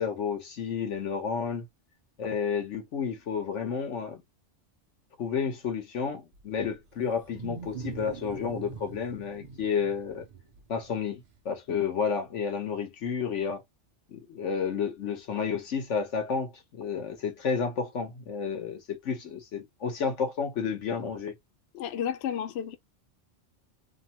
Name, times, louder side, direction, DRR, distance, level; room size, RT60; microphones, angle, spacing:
voice 1, 0.0-1.7 2.2-4.2 5.2-10.2 10.7-13.6 14.1-16.5 16.8-21.3, left 6 dB, 80° left, 1.3 m, -31 dB
Wild animals, 6.3-11.4, right 5 dB, 50° right, 0.6 m, -43 dB
voice 2, 21.7-22.8, left 9 dB, 65° left, 0.8 m, -32 dB
3.0 x 2.1 x 2.8 m
omnidirectional pair, 1.2 m